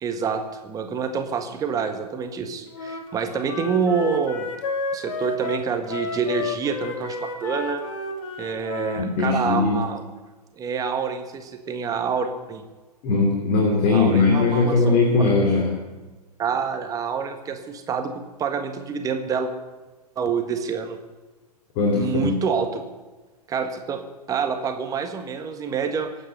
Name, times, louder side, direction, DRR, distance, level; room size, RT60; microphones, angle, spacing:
voice 1, 0.0-4.5 4.9-7.8 8.4-10.0 10.6-12.6 13.9-15.0 16.4-19.5 20.2-21.0 21.9-22.8 23.5-24.0 24.3-26.1, right 6 dB, 15° right, 6 dB, 1.6 m, -27 dB
Wind instrument woodwind instrument, 2.7-9.1, left 3 dB, 50° left, 2.4 m, -32 dB
voice 2, 9.0-9.9 13.0-15.8 21.8-22.3, left 3 dB, 35° left, 1 dB, 2.8 m, -20 dB
22.5 x 9.1 x 6.8 m, 1.2 s
figure-of-eight pair, 110°, 20 cm